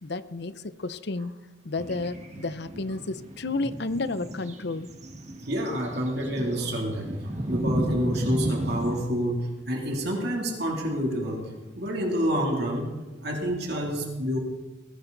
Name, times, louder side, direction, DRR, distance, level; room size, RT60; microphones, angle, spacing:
voice 1, 0.0-1.3 1.6-4.9, left 3 dB, 60° left, 13 dB, 0.7 m, -31 dB
sound 1, 1.8-9.0, right 1 dB, 35° right, 1.8 m, -33 dB
voice 2, 5.5-11.5 11.8-12.9 13.2-14.4, equal, 55° right, 0 dB, 3.1 m, -28 dB
20.0 x 17.5 x 4.0 m, 1.2 s
head